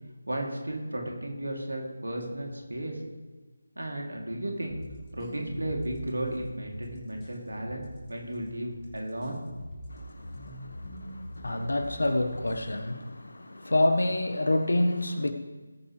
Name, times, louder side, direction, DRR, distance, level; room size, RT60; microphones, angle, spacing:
voice 1, 0.3-3.0 3.8-4.8 5.1-9.4, right 1 dB, 70° right, 0 dB, 2.7 m, -34 dB
sound 1, 4.7-12.7, equal, 15° left, 2.6 m, -43 dB
voice 2, 9.9-15.3, left 1 dB, 65° left, 8 dB, 1.2 m, -28 dB
19.0 x 8.5 x 3.2 m, 1.2 s
figure-of-eight pair, 160°, 0 cm